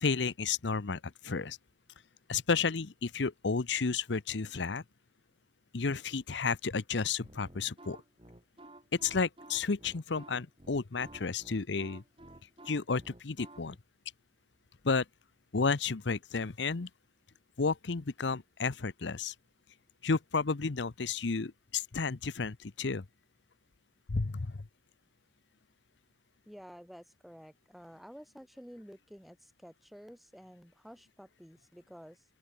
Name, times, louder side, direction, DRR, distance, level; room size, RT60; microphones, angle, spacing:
voice 1, 0.0-1.6 2.3-4.8 5.7-8.0 9.0-12.0 12.7-13.7 14.8-15.0 15.5-16.9 17.6-19.3 20.0-23.0 24.1-24.5, left 4 dB, 80° left, 0.8 m, -32 dB
sound 1, 7.2-13.8, right 1 dB, 30° right, 3.7 m, -53 dB
voice 2, 26.5-32.2, equal, ahead, 1.6 m, -51 dB
open air
head